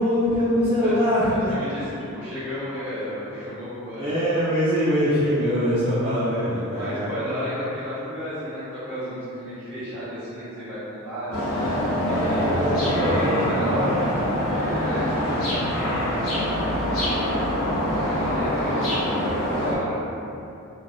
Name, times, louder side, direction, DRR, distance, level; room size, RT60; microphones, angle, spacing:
voice 1, 0.0-1.8 4.0-7.3 12.0-13.9, equal, 25° right, -11 dB, 0.4 m, -23 dB
voice 2, 1.2-4.1 6.7-11.7 12.0-14.1 14.4-16.4 17.5-20.0, equal, 10° right, -18 dB, 1.2 m, -33 dB
sound 1, 11.3-19.8, equal, 65° left, 0.7 m, -24 dB
3.4 x 2.2 x 2.5 m, 2.8 s
head